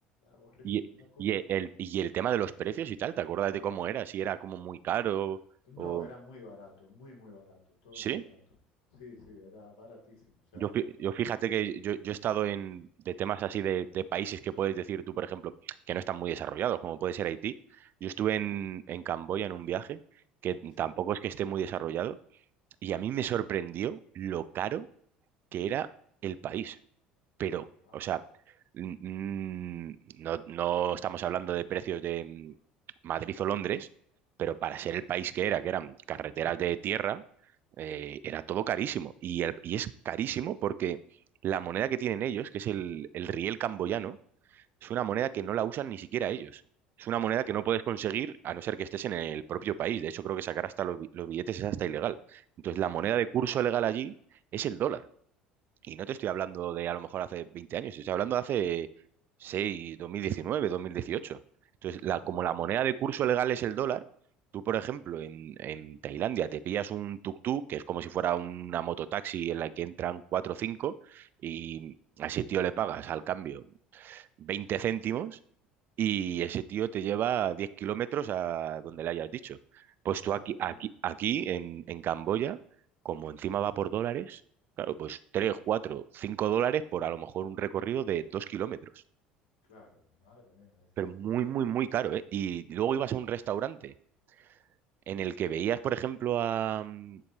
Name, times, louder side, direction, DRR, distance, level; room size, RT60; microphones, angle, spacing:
voice 1, 0.2-1.5 5.7-8.4 8.9-11.1 20.8-20.9 27.8-28.1 52.9-53.5 56.3-56.6 62.1-63.2 78.9-79.0 80.2-80.8 89.7-91.6, left 3 dB, 70° left, -1 dB, 2.2 m, -53 dB
voice 2, 1.2-5.4 5.8-6.1 7.9-8.2 10.5-15.5 15.9-20.0 20.4-22.2 22.8-24.9 25.5-25.9 26.2-26.8 27.4-27.7 27.9-28.2 28.7-32.5 33.0-33.9 34.4-37.2 37.8-41.0 41.4-44.2 44.5-46.6 47.0-54.1 54.5-55.0 55.9-58.9 59.4-61.4 61.8-64.0 64.5-73.7 73.9-75.4 76.0-82.6 83.0-84.4 84.8-88.9 91.0-93.9 95.1-97.2, right 10 dB, 45° right, 15 dB, 0.3 m, -32 dB
9.7 x 4.3 x 3.3 m, 0.65 s
hypercardioid pair, 65°, 5 cm